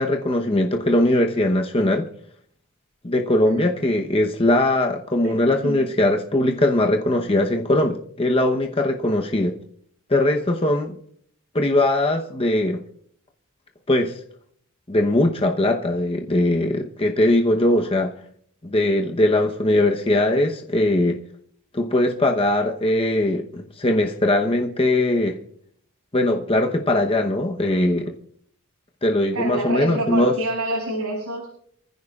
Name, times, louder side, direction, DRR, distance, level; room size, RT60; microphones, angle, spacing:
voice 1, 0.0-2.0 3.0-9.5 10.1-11.0 11.5-12.8 13.9-14.1 14.9-18.1 18.6-21.2 21.7-25.3 26.1-28.1 29.0-30.3, left 1 dB, 25° left, 0.9 m, -20 dB
voice 2, 5.2-5.8 29.3-31.5, right 1 dB, 75° right, 6.3 m, -27 dB
28.5 x 15.0 x 2.4 m
head